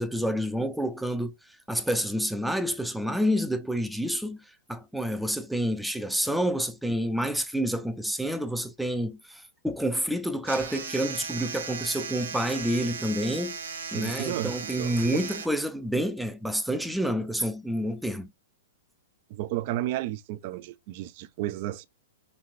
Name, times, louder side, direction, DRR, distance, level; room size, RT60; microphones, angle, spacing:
voice 1, 0.0-1.3 1.7-4.4 4.7-13.6 13.9-18.3, equal, ahead, 0.5 m, -28 dB
sound 1, 10.4-15.5, right 5 dB, 70° right, 1.1 m, -37 dB
voice 2, 13.9-15.2 19.3-21.9, right 14 dB, 45° right, 0.5 m, -33 dB
5.5 x 3.4 x 2.5 m
figure-of-eight pair, 105°, 0 cm